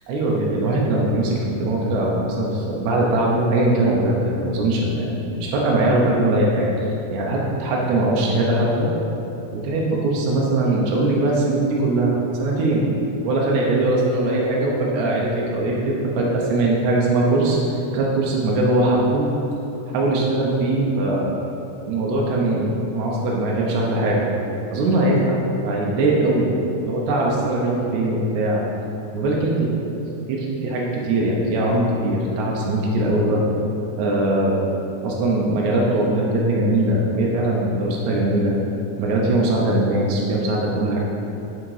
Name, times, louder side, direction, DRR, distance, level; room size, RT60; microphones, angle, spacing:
voice 1, 0.1-8.9 9.5-12.9 13.2-19.2 19.9-21.2 21.9-22.7 22.9-24.3 24.7-26.5 26.8-28.6 29.1-29.7 30.3-33.4 34.0-34.7 35.0-38.6 39.0-41.0, right 2 dB, 80° right, -3 dB, 2.2 m, -21 dB
6.3 x 4.9 x 4.7 m, 2.9 s
omnidirectional pair, 3.3 m